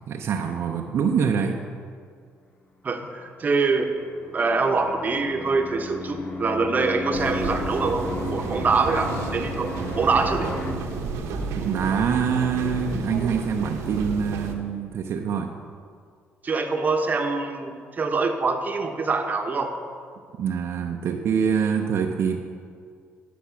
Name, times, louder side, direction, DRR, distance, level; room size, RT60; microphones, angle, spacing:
voice 1, 0.1-1.6 11.5-15.5 20.4-22.4, right 6 dB, 65° right, 3 dB, 0.6 m, -25 dB
voice 2, 2.8-3.9 4.3-10.5 16.4-19.7, right 4 dB, 35° right, 5 dB, 0.9 m, -24 dB
sound 1, 3.4-10.7, left 2 dB, 35° left, 1.0 m, -34 dB
sound 2, 7.1-14.5, right 4 dB, 85° right, 1.0 m, -31 dB
10.0 x 6.0 x 5.9 m, 2.1 s
cardioid pair, 90°, 5 cm